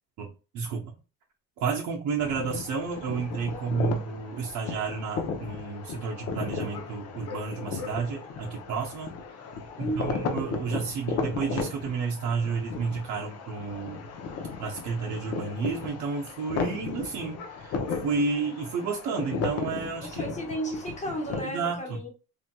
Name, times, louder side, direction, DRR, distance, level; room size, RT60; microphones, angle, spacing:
voice 1, 0.2-0.9 1.6-9.1 9.8-14.1 14.6-17.8 18.0-20.2 21.4-22.0, right 5 dB, 55° right, 0.7 m, -31 dB
sound 1, 2.2-21.4, left 5 dB, 45° left, 0.7 m, -35 dB
voice 2, 3.5-4.1 9.8-10.5 20.0-22.1, right 1 dB, 20° left, 1.1 m, -35 dB
3.2 x 2.7 x 2.2 m
cardioid pair, 120°, 34 cm